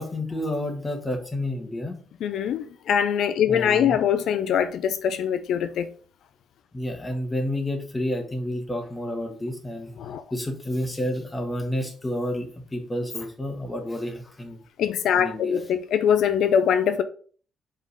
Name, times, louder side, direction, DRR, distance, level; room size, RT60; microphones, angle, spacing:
voice 1, 0.0-2.0 3.5-4.0 6.7-9.9 10.3-14.6 15.2-15.6, left 1 dB, 15° left, 1.4 m, -30 dB
voice 2, 2.2-5.9 10.0-10.2 14.8-17.0, left 8 dB, 75° left, 0.5 m, -23 dB
5.3 x 3.8 x 4.9 m
cardioid pair, 125°, 0 cm